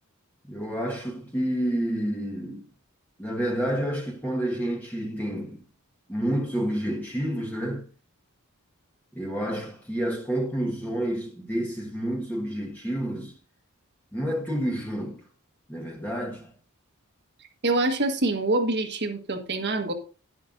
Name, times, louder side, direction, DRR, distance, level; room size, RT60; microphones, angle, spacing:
voice 1, 0.5-2.7 3.2-5.6 6.1-7.8 9.1-13.3 14.1-15.2 15.7-16.5, right 1 dB, 10° left, 1.3 m, -29 dB
voice 2, 17.6-19.9, right 2 dB, 55° right, 1.5 m, -25 dB
11.0 x 10.5 x 2.6 m
head